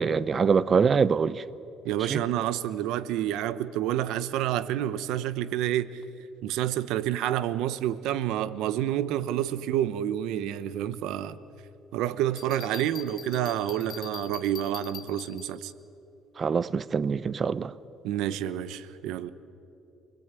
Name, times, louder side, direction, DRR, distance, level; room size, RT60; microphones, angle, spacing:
voice 1, 0.0-1.4 2.0-2.2 16.4-17.7, right 5 dB, 30° right, 0.7 m, -24 dB
voice 2, 1.8-6.0 6.4-11.4 11.9-15.7 18.0-19.3, right 11 dB, 80° right, 1.0 m, -29 dB
Bell, 12.4-15.7, left 8 dB, 45° left, 2.2 m, -44 dB
28.5 x 21.0 x 9.1 m
cardioid pair, 135°, 0 cm